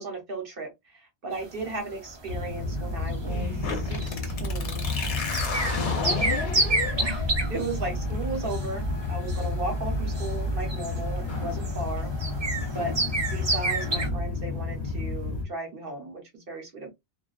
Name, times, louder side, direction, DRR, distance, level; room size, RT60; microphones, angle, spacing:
voice 1, 0.0-6.3 7.0-12.2 12.7-12.9 13.3-16.9, right 2 dB, 55° right, 1.0 m, -36 dB
sound 1, 1.3-14.1, right 2 dB, 35° right, 0.4 m, -32 dB
sound 2, 2.3-15.5, left 2 dB, 45° left, 1.1 m, -31 dB
sound 3, 3.6-11.1, left 4 dB, 65° left, 0.9 m, -35 dB
2.3 x 2.3 x 2.3 m
omnidirectional pair, 1.2 m